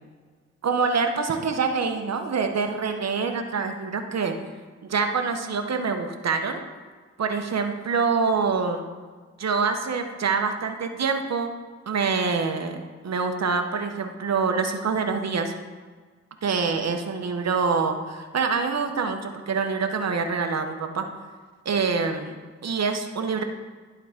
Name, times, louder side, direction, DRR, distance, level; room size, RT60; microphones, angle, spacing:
voice 1, 0.6-4.3 4.8-6.6 7.2-8.8 9.4-11.5 11.9-12.8 13.0-15.5 16.4-21.1 21.6-22.4 22.6-23.4, right 5 dB, 55° right, 6 dB, 1.0 m, -25 dB
11.5 x 3.9 x 3.6 m, 1.5 s
supercardioid pair, 40°, 31 cm